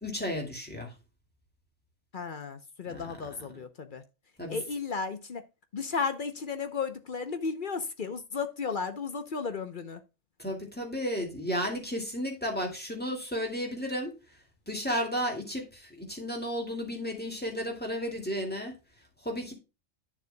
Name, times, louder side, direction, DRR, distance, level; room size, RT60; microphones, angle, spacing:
voice 1, 0.0-0.9 2.9-3.3 4.4-4.6 10.4-14.1 14.7-18.8 19.2-19.5, equal, 5° left, 2.2 m, -33 dB
voice 2, 2.1-4.0 4.5-5.4 5.7-10.0, left 5 dB, 45° left, 0.8 m, -34 dB
11.0 x 6.7 x 2.2 m
omnidirectional pair, 1.4 m